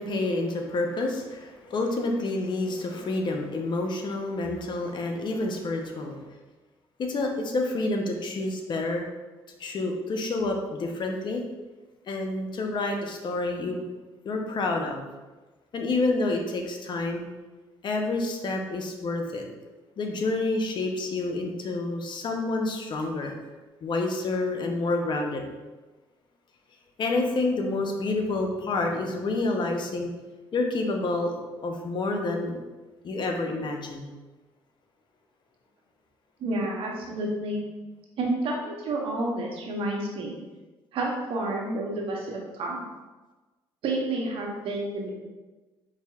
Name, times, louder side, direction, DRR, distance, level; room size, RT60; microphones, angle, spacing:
voice 1, 0.0-6.2 7.0-9.0 9.6-11.4 12.1-13.8 14.2-15.0 15.7-17.2 17.8-19.4 20.0-23.3 23.8-25.4 27.0-30.1 30.5-31.4 31.6-32.6 33.0-34.1, left 2 dB, 50° left, 3 dB, 0.6 m, -28 dB
voice 2, 36.4-37.6 38.2-40.3 40.9-42.8 43.8-45.1, right 2 dB, 65° right, -1 dB, 0.8 m, -30 dB
4.8 x 2.7 x 2.3 m, 1.2 s
supercardioid pair, 70°, 10 cm